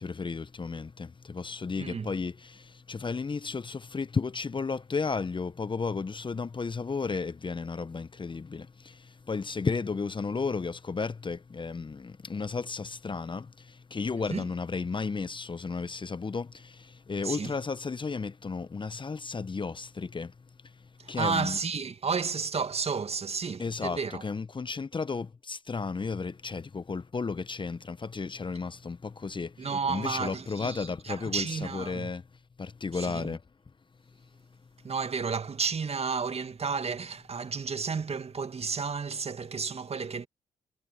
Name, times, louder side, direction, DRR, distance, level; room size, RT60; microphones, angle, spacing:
voice 1, 0.0-20.3 20.6-20.7 21.1-21.6 23.6-32.2 32.6-33.4, left 4 dB, 30° left, 1.1 m, -33 dB
voice 2, 1.8-2.1 14.3-14.5 17.2-17.5 21.0-24.2 29.6-32.1 32.9-33.4 34.8-40.3, right 5 dB, 40° right, 2.1 m, -32 dB
hypercardioid pair, 40°, 16 cm